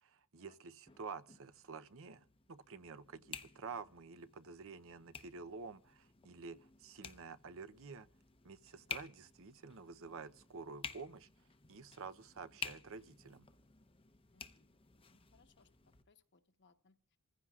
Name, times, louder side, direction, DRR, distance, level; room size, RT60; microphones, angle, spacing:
voice 1, 0.0-8.1 8.4-11.3 11.7-13.5, right 4 dB, 65° right, 0.8 m, -50 dB
sound 1, 0.9-16.0, left 6 dB, 25° left, 0.8 m, -52 dB
voice 2, 14.3-17.2, left 4 dB, 55° left, 1.1 m, -71 dB
27.5 x 15.0 x 2.4 m
head